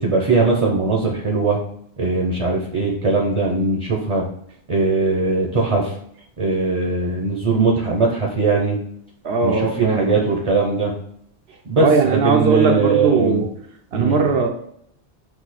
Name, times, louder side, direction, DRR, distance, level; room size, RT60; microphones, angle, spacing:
voice 1, 0.0-1.6 2.0-4.2 4.7-5.9 6.4-8.8 9.4-10.9 11.7-13.4 13.9-14.2, right 3 dB, 35° right, 0 dB, 0.6 m, -20 dB
voice 2, 9.2-10.2 11.8-13.5 13.9-14.5, right 5 dB, 70° right, 3 dB, 0.8 m, -19 dB
4.1 x 2.7 x 4.1 m, 0.71 s
omnidirectional pair, 1.2 m